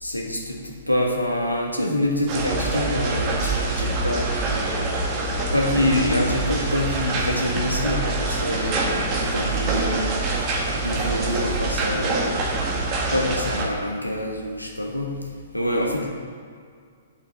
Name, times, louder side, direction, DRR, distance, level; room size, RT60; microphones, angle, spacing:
voice 1, 0.0-4.7 5.5-10.2 10.8-12.4 13.1-15.1 15.5-16.1, left 1 dB, 90° left, 0 dB, 1.5 m, -26 dB
sound 1, 2.3-13.7, right 2 dB, 30° right, 1.4 m, -25 dB
6.7 x 5.9 x 7.1 m, 2.1 s
figure-of-eight pair, 115°, 0 cm